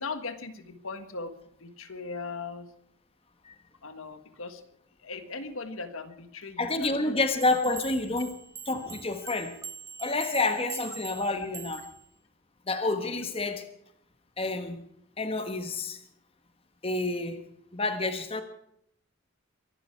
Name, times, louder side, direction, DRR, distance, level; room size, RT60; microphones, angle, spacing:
voice 1, 0.0-1.3 1.6-2.7 3.8-4.6 5.0-7.2 13.0-13.3, left 4 dB, 70° left, 10 dB, 1.5 m, -39 dB
voice 2, 6.6-8.3 8.6-9.5 10.0-11.9 12.7-13.7 14.4-14.8 15.2-16.0 16.8-17.4 17.7-18.4, left 2 dB, 25° left, 8 dB, 1.3 m, -29 dB
sound 1, 7.4-12.1, right 6 dB, 15° right, 0.6 m, -43 dB
24.0 x 12.0 x 4.6 m, 0.72 s
head